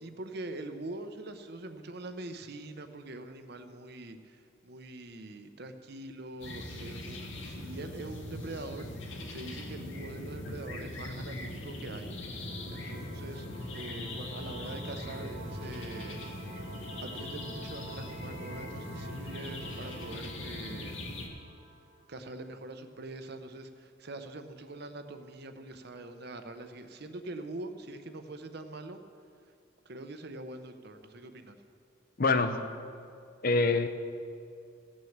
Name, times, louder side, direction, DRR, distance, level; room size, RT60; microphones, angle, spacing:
voice 1, 0.0-12.1 12.4-13.5 13.7-16.2 17.0-21.0 22.1-29.0 29.8-31.6, right 2 dB, 50° right, 8 dB, 0.8 m, -44 dB
sound 1, 6.4-21.3, left 1 dB, 65° left, 1.7 m, -40 dB
sound 2, 12.4-22.8, right 2 dB, 30° right, 1.1 m, -50 dB
voice 2, 32.2-32.6 33.4-33.9, left 3 dB, 45° left, 9 dB, 0.6 m, -25 dB
16.0 x 6.3 x 7.3 m, 2.4 s
head